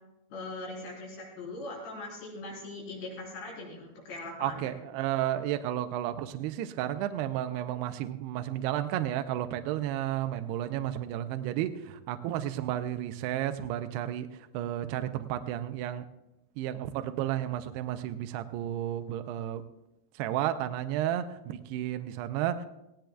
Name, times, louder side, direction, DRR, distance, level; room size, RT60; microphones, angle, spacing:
voice 1, 0.3-4.6, left 2 dB, 75° left, -3 dB, 6.5 m, -40 dB
voice 2, 4.4-16.1 16.6-19.6 20.1-22.7, right 12 dB, 80° right, 8 dB, 2.5 m, -32 dB
18.0 x 18.0 x 2.3 m, 0.92 s
omnidirectional pair, 5.0 m